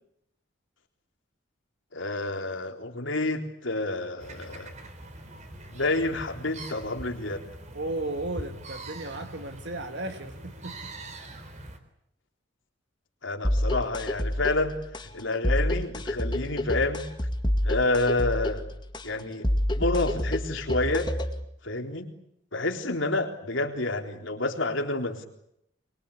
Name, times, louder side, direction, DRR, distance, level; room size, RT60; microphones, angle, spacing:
voice 1, 1.9-4.7 5.7-7.4 13.2-14.8 15.1-17.1 17.6-18.6 19.0-19.5 19.7-21.1 21.6-22.1 22.5-25.3, left 2 dB, 80° left, 4 dB, 3.9 m, -29 dB
sound 1, 4.2-11.8, right 1 dB, 35° right, 3.5 m, -43 dB
voice 2, 7.7-10.8, right 2 dB, 60° right, 6 dB, 1.8 m, -34 dB
sound 2, 13.4-21.4, left 1 dB, 25° left, 2.0 m, -28 dB
24.5 x 23.0 x 8.5 m, 0.75 s
head